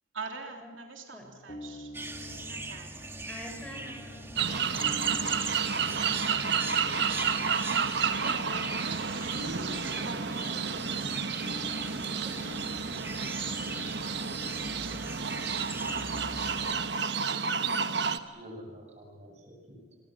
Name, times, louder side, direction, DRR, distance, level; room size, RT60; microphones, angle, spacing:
voice 1, 0.1-1.9 2.2-3.0 8.0-11.0, right 3 dB, 80° right, 3 dB, 3.4 m, -43 dB
sound 1, 1.2-16.5, left 2 dB, 35° left, 1.8 m, -47 dB
sound 2, 1.9-16.7, right 2 dB, 10° right, 1.6 m, -40 dB
voice 2, 3.3-4.3 9.9-11.5, equal, 5° left, 3 dB, 4.8 m, -47 dB
sound 3, 4.4-18.2, right 6 dB, 60° right, 1.2 m, -31 dB
voice 3, 18.0-20.0, equal, 35° right, 3 dB, 6.8 m, -48 dB
28.0 x 23.0 x 7.6 m, 1.3 s
head